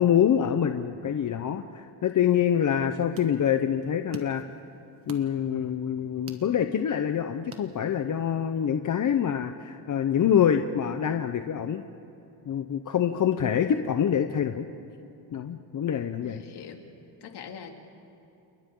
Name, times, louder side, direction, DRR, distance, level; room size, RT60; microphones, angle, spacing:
voice 1, 0.0-4.4 5.1-11.8 12.5-14.7 15.3-16.4, left 9 dB, 40° left, 7 dB, 0.9 m, -25 dB
sound 1, 2.6-8.3, right 4 dB, 30° right, 1.7 m, -48 dB
voice 2, 16.2-16.8 17.2-17.8, left 7 dB, 60° left, 3 dB, 2.7 m, -43 dB
30.0 x 29.5 x 3.9 m, 2.9 s
cardioid pair, 115°, 45 cm